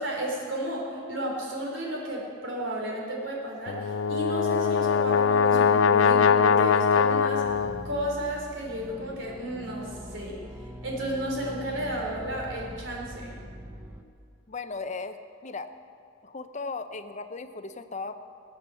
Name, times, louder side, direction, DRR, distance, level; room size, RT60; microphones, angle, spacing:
voice 1, 0.0-7.5 7.8-10.4 10.8-13.4, right 1 dB, 65° right, -1 dB, 3.9 m, -33 dB
Brass instrument, 3.7-7.9, left 6 dB, 85° left, 0.4 m, -22 dB
sound 1, 7.4-14.0, right 1 dB, 10° right, 0.7 m, -42 dB
voice 2, 14.5-15.7 16.2-18.2, left 4 dB, 35° left, 9 dB, 0.6 m, -36 dB
20.0 x 8.5 x 7.8 m, 2.3 s
head